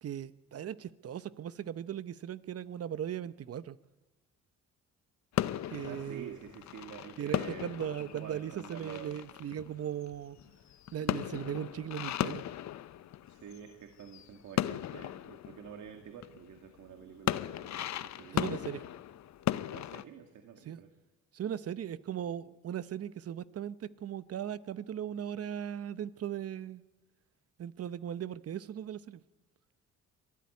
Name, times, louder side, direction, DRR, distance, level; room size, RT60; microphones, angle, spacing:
voice 1, 0.0-3.8 5.7-6.4 7.2-10.4 10.9-12.4 18.3-18.8 20.7-20.8 21.3-26.8 27.6-29.2, right 10 dB, 50° right, 0.9 m, -38 dB
sound 1, 5.3-13.7 14.0-16.6 17.0-20.0, left 12 dB, 65° left, 0.8 m, -37 dB
voice 2, 5.8-9.2 13.3-18.8 19.7-20.9, right 8 dB, 75° right, 2.1 m, -49 dB
23.5 x 14.5 x 9.5 m
cardioid pair, 90°, 30 cm